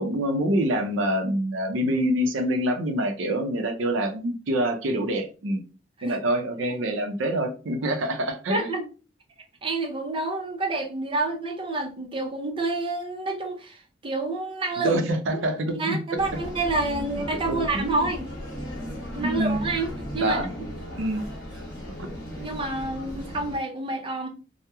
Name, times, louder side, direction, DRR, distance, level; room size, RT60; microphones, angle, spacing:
voice 1, 0.0-5.6 6.0-8.7 14.8-16.0 17.3-18.1 19.2-19.6 20.2-20.5 21.0-21.2 22.0-22.1, right 1 dB, 85° right, 0.5 m, -26 dB
voice 2, 8.5-8.9 9.6-15.0 15.3-18.3 19.1-19.9 20.1-20.5 22.4-24.3, right 2 dB, 25° right, 0.5 m, -28 dB
sound 1, 16.2-23.5, equal, 60° left, 1.1 m, -36 dB
2.9 x 2.0 x 2.2 m
head